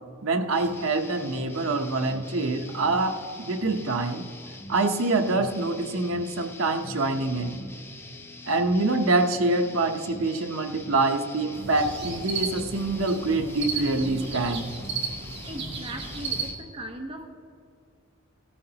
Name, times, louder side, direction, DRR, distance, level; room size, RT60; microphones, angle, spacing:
voice 1, 0.2-4.3 4.7-7.6 8.5-14.7, right 2 dB, 75° right, 6 dB, 0.9 m, -25 dB
sound 1, 0.5-16.6, left 1 dB, 10° left, 0.7 m, -43 dB
sound 2, 11.5-16.5, right 4 dB, 60° right, 1.9 m, -34 dB
voice 2, 15.5-17.4, right 1 dB, 30° right, 4 dB, 1.0 m, -38 dB
17.5 x 13.0 x 2.9 m, 2.2 s
head